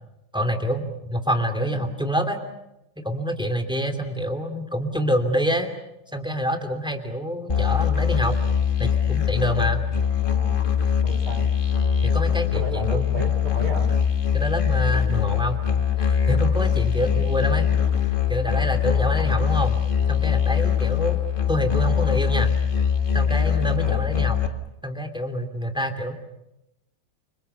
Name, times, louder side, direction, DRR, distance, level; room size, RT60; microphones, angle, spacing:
voice 1, 0.3-2.4 3.0-5.7 6.1-8.4 8.8-9.8 12.0-13.2 14.3-15.6 16.0-17.7 18.3-19.8 20.1-21.2 21.5-22.5 23.1-24.4 24.8-26.1, equal, ahead, 7 dB, 2.7 m, -26 dB
Musical instrument, 7.5-24.5, left 8 dB, 25° left, 1.6 m, -22 dB
voice 2, 10.2-10.6 11.0-11.5 12.5-13.9 17.0-17.2 23.8-24.3, equal, 50° right, 7 dB, 3.9 m, -33 dB
30.0 x 25.5 x 6.9 m, 0.88 s
omnidirectional pair, 2.3 m